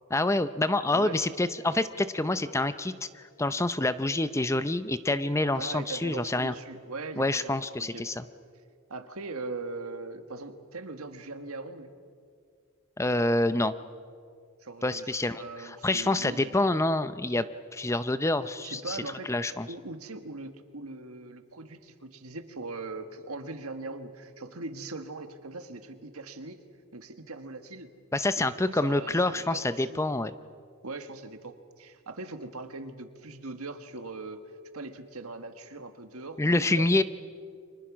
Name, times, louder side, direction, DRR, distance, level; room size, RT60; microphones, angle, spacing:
voice 1, 0.1-6.5 7.2-8.2 13.0-13.7 14.8-15.4 15.8-17.4 17.7-19.0 19.3-19.7 28.1-30.3 36.4-37.0, left 2 dB, 15° left, 12 dB, 0.5 m, -27 dB
voice 2, 0.9-1.3 5.5-8.1 8.9-11.9 14.6-16.6 18.6-19.3 19.7-26.6 26.9-27.9 28.4-30.0 30.8-34.4 34.7-37.0, right 3 dB, 75° right, 8 dB, 1.7 m, -40 dB
30.0 x 25.0 x 6.2 m, 2.2 s
head